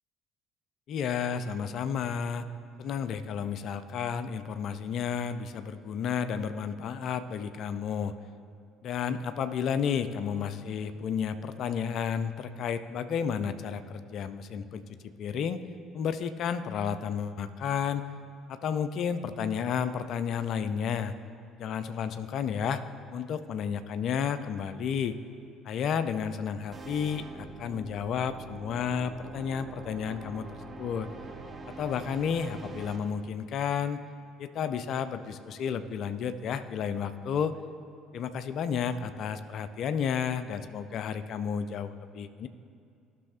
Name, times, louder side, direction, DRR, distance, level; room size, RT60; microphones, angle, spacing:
voice 1, 0.9-2.5 2.8-8.1 8.8-15.6 15.9-18.0 18.5-21.1 21.6-22.8 23.1-25.2 25.6-30.4 30.8-31.1 31.7-34.0 34.4-37.6 38.1-42.5, left 7 dB, 50° left, 11 dB, 0.4 m, -32 dB
sound 1, 26.7-33.0, right 2 dB, 25° right, 0.9 m, -44 dB
15.0 x 6.2 x 2.6 m, 2.5 s
figure-of-eight pair, 55°, 0 cm